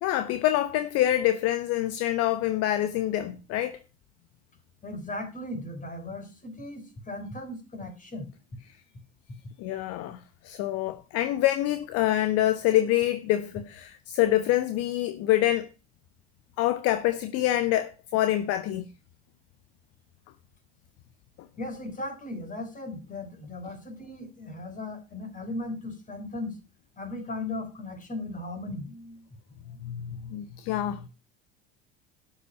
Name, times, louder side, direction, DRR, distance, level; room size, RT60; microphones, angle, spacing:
voice 1, 0.0-3.8 9.6-15.7 16.6-18.9 29.8-31.0, left 13 dB, 50° left, 1.1 m, -26 dB
voice 2, 4.8-8.3 21.6-26.5 27.0-29.3 29.7-29.8, left 2 dB, 25° left, 5.0 m, -37 dB
12.5 x 8.9 x 5.9 m
figure-of-eight pair, 65°, 31 cm